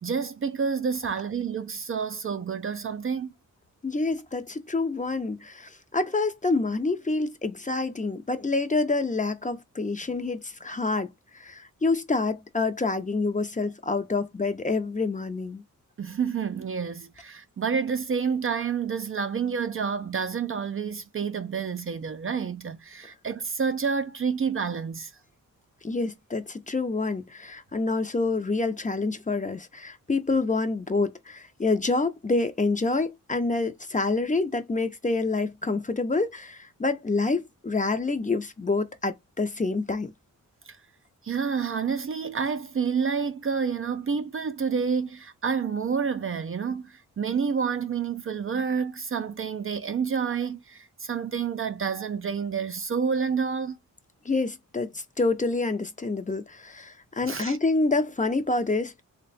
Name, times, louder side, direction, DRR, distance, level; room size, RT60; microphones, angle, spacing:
voice 1, 0.0-3.3 16.0-25.1 40.7-40.8 41.2-53.8 57.2-57.6, right 6 dB, 40° right, 0.5 m, -29 dB
voice 2, 3.8-11.1 11.4-15.6 25.8-40.1 54.3-54.9 55.2-59.0, left 3 dB, 20° left, 0.6 m, -27 dB
3.3 x 2.2 x 4.0 m
cardioid pair, 70°, 34 cm